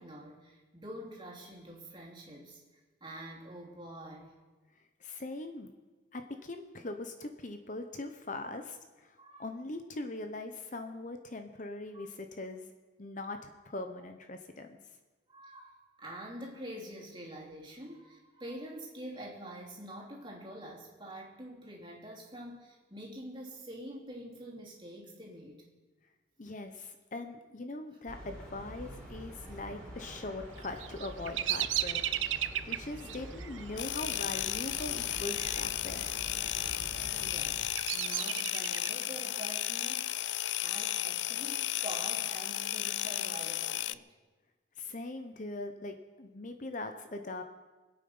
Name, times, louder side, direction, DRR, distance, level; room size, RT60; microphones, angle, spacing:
voice 1, 0.0-4.3 9.2-9.5 11.9-12.1 15.3-25.6 37.1-40.1 40.6-44.1, right 1 dB, 25° right, -3 dB, 3.0 m, -46 dB
voice 2, 5.0-5.7 6.1-12.7 13.0-14.8 26.4-32.0 32.7-36.0 44.8-47.4, left 2 dB, 40° left, 6 dB, 0.8 m, -41 dB
sound 1, 28.1-37.5, equal, 5° left, 4.0 m, -46 dB
Bird vocalization bird call bird song, 30.6-35.6 35.9-36.5 37.1-39.1, right 12 dB, 80° right, 0.5 m, -35 dB
sound 2, 33.8-43.9, left 13 dB, 65° left, 0.4 m, -34 dB
24.5 x 8.7 x 5.5 m, 1.2 s
head